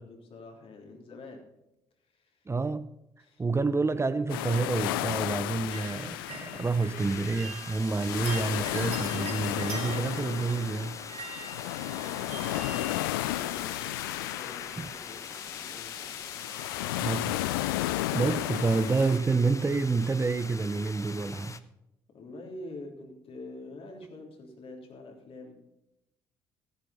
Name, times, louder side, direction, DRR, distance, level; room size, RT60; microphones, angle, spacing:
voice 1, 0.0-1.5 2.0-2.5 3.2-3.8 11.7-16.2 22.1-25.5, left 2 dB, 50° left, 3.5 m, -47 dB
voice 2, 2.5-3.0 3.4-11.0 14.8-14.9 17.0-17.4 18.1-21.6, right 4 dB, 20° right, 0.8 m, -28 dB
sound 1, 4.3-19.2, left 17 dB, 75° left, 0.4 m, -34 dB
sound 2, 5.7-14.6 15.6-16.1 16.3-16.9 17.2-17.3, right 3 dB, 60° right, 3.0 m, -45 dB
sound 3, 7.0-21.6, left 4 dB, 25° left, 1.0 m, -44 dB
14.0 x 11.5 x 4.3 m
figure-of-eight pair, 45°, 12 cm